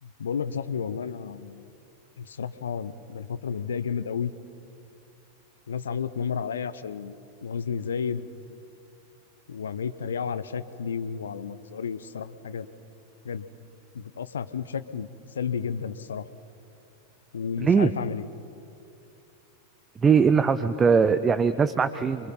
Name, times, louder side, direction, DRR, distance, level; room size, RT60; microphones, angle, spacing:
voice 1, 0.0-1.7 2.2-4.3 5.7-8.3 9.5-12.7 13.2-13.5 13.9-16.2 17.3-18.3, left 6 dB, 65° left, 14 dB, 0.9 m, -32 dB
voice 2, 17.6-17.9 20.0-22.3, right 6 dB, 20° right, 11 dB, 0.7 m, -21 dB
28.0 x 23.5 x 5.8 m, 2.5 s
figure-of-eight pair, 90°, 0 cm